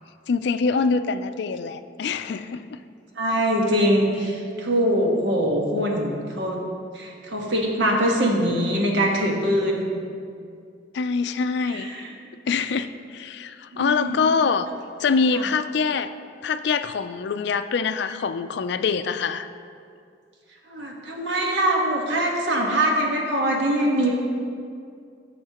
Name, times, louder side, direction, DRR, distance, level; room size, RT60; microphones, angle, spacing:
voice 1, 0.3-2.8 10.9-11.9 12.4-14.7 15.0-16.1 16.4-19.5, left 5 dB, 65° left, 11 dB, 0.4 m, -24 dB
voice 2, 3.2-6.6 6.9-9.9 11.6-12.0 13.7-14.2 15.3-15.4 20.7-24.2, equal, 80° right, -1 dB, 1.4 m, -23 dB
14.5 x 6.5 x 2.9 m, 2.3 s
head